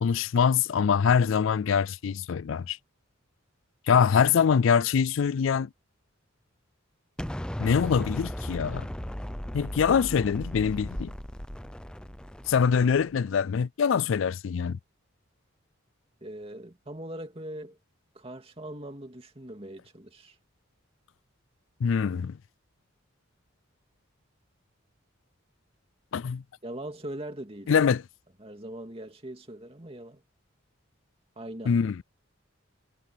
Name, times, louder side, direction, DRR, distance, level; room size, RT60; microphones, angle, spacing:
voice 1, 0.0-2.8 3.9-5.7 7.6-8.9 9.5-11.1 12.5-14.8 21.8-22.4 26.1-26.4 27.7-28.0 31.7-32.0, left 6 dB, 70° left, 0.4 m, -24 dB
Explosion, 7.2-13.2, equal, 5° left, 0.5 m, -37 dB
voice 2, 16.2-17.8 18.1-20.4 26.6-27.8 28.4-30.2 31.4-31.8, right 1 dB, 30° right, 2.5 m, -41 dB
head